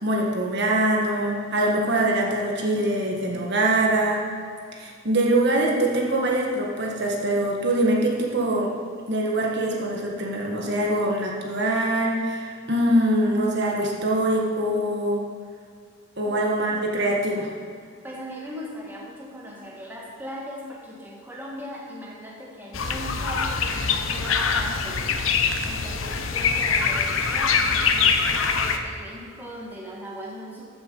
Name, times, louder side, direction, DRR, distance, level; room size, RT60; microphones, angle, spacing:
voice 1, 0.0-4.2 4.7-8.7 9.1-15.2 16.2-17.5, right 1 dB, 55° right, -2 dB, 1.7 m, -23 dB
voice 2, 18.0-25.3 25.6-30.6, equal, 10° right, -3 dB, 1.6 m, -39 dB
sound 1, 22.7-28.8, left 5 dB, 75° left, 0.9 m, -23 dB
14.0 x 7.2 x 5.5 m, 2.2 s
head